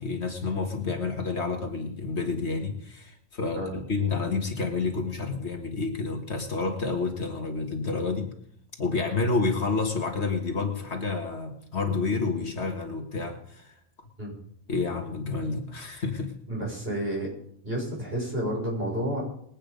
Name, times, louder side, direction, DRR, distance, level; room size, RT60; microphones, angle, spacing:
voice 1, 0.0-8.3 8.8-13.8 14.7-16.3, left 4 dB, 60° left, 4 dB, 1.9 m, -29 dB
voice 2, 16.5-17.3 17.6-19.2, right 1 dB, 50° right, -4 dB, 6.6 m, -30 dB
20.5 x 8.8 x 5.2 m, 0.70 s
omnidirectional pair, 1.3 m